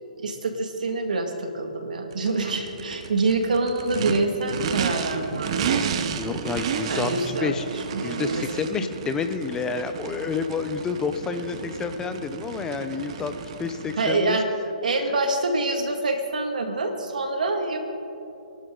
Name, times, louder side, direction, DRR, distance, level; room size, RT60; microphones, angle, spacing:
voice 1, 0.2-6.2 6.9-8.4 8.8-8.9 13.9-14.5 14.8-17.8, right 2 dB, 75° right, 4 dB, 2.2 m, -26 dB
Race car auto racing / Idling / Accelerating revving vroom, 2.1-14.2, right 7 dB, 45° right, 1.0 m, -32 dB
voice 2, 6.1-7.6 8.0-13.3 13.6-14.4 15.1-15.2, left 5 dB, 15° left, 8 dB, 0.7 m, -29 dB
25.0 x 11.5 x 4.0 m, 2.8 s
hypercardioid pair, 140°, 4 cm